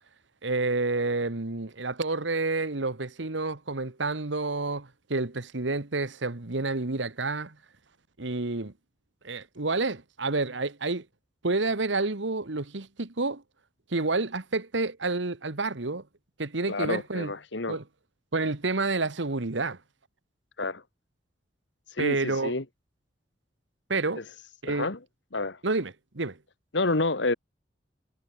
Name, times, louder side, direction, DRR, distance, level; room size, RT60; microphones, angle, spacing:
voice 1, 0.4-7.5 8.2-8.7 9.2-11.0 11.4-13.4 13.9-16.0 16.4-17.3 17.7-17.8 18.3-19.8 22.0-22.5 23.9-24.2 24.6-24.9 25.6-26.4, right 3 dB, 80° right, 1.5 m, -29 dB
voice 2, 16.7-17.8 20.6-20.8 21.9-22.6 24.6-25.0 25.3-25.6 26.7-27.3, left 2 dB, 70° left, 1.7 m, -29 dB
head